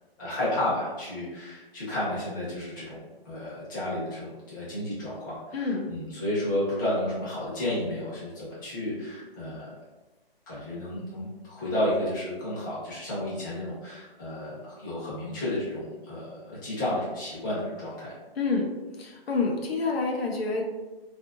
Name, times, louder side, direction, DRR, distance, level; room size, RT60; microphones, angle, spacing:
voice 1, 0.2-3.0 3.2-9.7 10.5-18.1, left 1 dB, 20° left, -9 dB, 0.7 m, -32 dB
voice 2, 5.5-5.9 18.4-18.7 19.0-20.6, left 4 dB, 80° left, 1 dB, 0.6 m, -27 dB
2.7 x 2.5 x 2.3 m, 1.2 s
hypercardioid pair, 170°, 30 cm